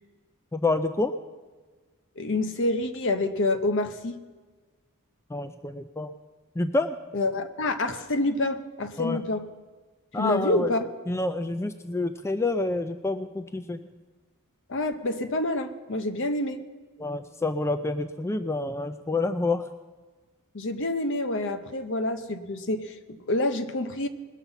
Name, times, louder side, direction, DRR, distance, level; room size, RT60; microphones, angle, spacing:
voice 1, 0.5-1.1 5.3-6.1 6.6-7.0 9.0-9.2 10.1-10.7 11.1-13.8 17.0-19.7, left 2 dB, 10° left, 9 dB, 0.3 m, -28 dB
voice 2, 2.2-4.2 7.1-9.5 10.2-10.9 14.7-16.6 20.5-24.1, left 2 dB, 60° left, 9 dB, 0.9 m, -27 dB
20.5 x 7.0 x 5.6 m, 1.3 s
head